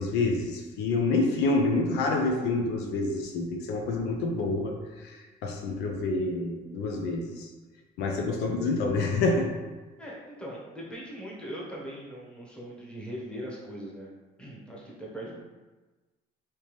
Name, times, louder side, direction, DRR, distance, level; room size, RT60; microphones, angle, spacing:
voice 1, 0.0-7.5 8.0-9.5, left 3 dB, 85° left, 2 dB, 0.6 m, -28 dB
voice 2, 10.0-14.1 14.4-15.4, equal, 5° left, -5 dB, 1.0 m, -40 dB
3.4 x 2.9 x 3.0 m, 1.2 s
cardioid pair, 110°, 17 cm